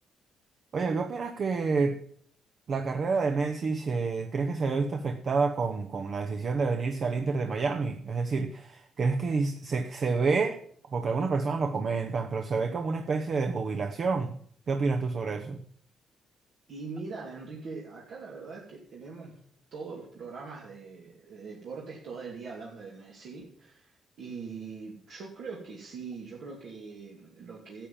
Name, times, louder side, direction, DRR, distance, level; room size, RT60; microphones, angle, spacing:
voice 1, 0.7-2.0 2.7-10.6 10.9-14.4 14.7-15.6, right 4 dB, 50° right, 0.9 m, -28 dB
voice 2, 16.7-19.4 19.7-27.9, right 4 dB, 70° right, 2.6 m, -42 dB
11.5 x 7.4 x 7.3 m
cardioid pair, 90°, 0 cm